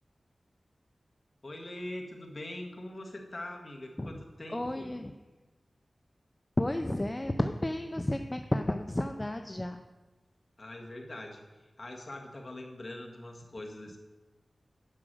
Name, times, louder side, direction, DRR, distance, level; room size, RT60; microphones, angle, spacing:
voice 1, 1.4-4.9 10.6-14.0, left 1 dB, 45° left, 1 dB, 1.9 m, -43 dB
voice 2, 4.5-5.1 6.6-9.8, left 1 dB, 25° left, 6 dB, 0.6 m, -32 dB
9.9 x 6.2 x 7.7 m, 1.2 s
wide cardioid pair, 75°, 0 cm